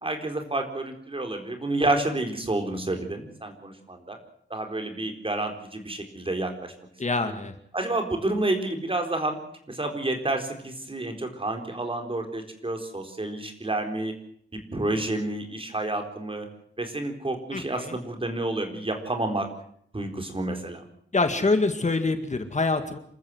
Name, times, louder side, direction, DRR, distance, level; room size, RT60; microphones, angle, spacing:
voice 1, 0.0-4.2 4.5-6.7 7.7-9.4 9.7-14.1 14.7-16.5 16.8-19.5 19.9-20.8, right 2 dB, 30° right, 4 dB, 4.2 m, -29 dB
voice 2, 7.0-7.5 17.5-18.0 21.1-23.0, left 3 dB, 40° left, 7 dB, 2.1 m, -25 dB
27.0 x 14.0 x 7.9 m, 0.66 s
wide cardioid pair, 110°, 19 cm